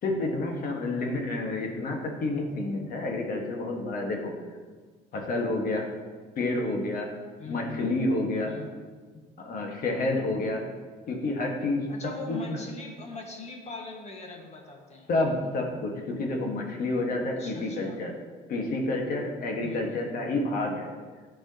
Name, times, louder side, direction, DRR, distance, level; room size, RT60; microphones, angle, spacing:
voice 1, 0.0-4.3 5.1-5.9 6.4-7.1 7.5-8.5 9.4-10.7 11.1-12.6 15.1-18.1 18.5-20.9, left 2 dB, 60° left, 1 dB, 1.5 m, -29 dB
voice 2, 7.4-7.8 8.4-8.7 11.9-15.1 17.4-18.0 19.6-20.2, left 4 dB, 40° left, 1 dB, 1.6 m, -41 dB
12.5 x 4.7 x 2.9 m, 1.4 s
cardioid pair, 110°, 17 cm